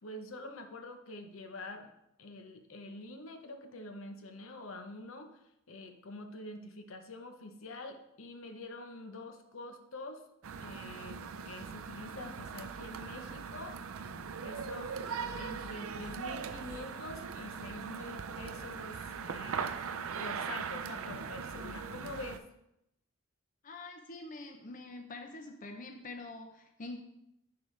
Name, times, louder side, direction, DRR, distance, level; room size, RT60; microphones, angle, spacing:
voice 1, 0.0-1.9 2.2-5.4 5.7-10.2 10.6-13.8 14.4-15.0 15.4-19.8 20.2-22.5, left 2 dB, 75° left, 6 dB, 0.8 m, -46 dB
sound 1, 10.4-22.4, right 6 dB, 85° right, 0.5 m, -40 dB
voice 2, 23.6-27.0, left 2 dB, 40° left, 4 dB, 0.6 m, -45 dB
10.0 x 4.8 x 3.2 m, 0.83 s
head